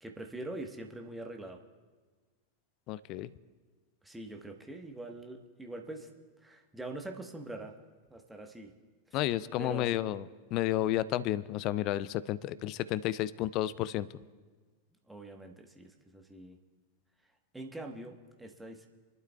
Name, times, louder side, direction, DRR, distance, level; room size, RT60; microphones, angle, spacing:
voice 1, 0.0-1.6 4.0-6.1 6.4-7.7 8.1-8.7 9.6-10.0 15.1-16.6 17.5-18.9, right 2 dB, 5° right, 3 dB, 1.3 m, -43 dB
voice 2, 2.9-3.3 9.1-10.3 10.5-14.1, left 14 dB, 40° left, 17 dB, 0.4 m, -31 dB
29.0 x 12.0 x 2.3 m, 1.4 s
figure-of-eight pair, 90°, 0 cm